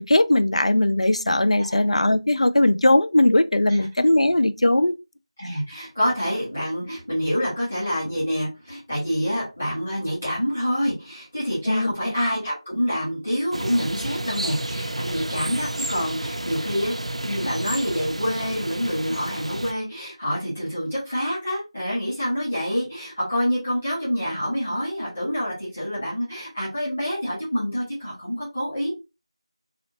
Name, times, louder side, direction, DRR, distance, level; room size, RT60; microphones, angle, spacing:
voice 1, 0.0-5.0 11.7-11.9, left 1 dB, 80° left, 0.4 m, -19 dB
voice 2, 5.4-16.9 17.2-28.9, equal, 15° left, 1.3 m, -27 dB
sound 1, 13.5-19.7, right 1 dB, 80° right, 0.4 m, -31 dB
2.8 x 2.7 x 2.9 m
figure-of-eight pair, 180°, 3 cm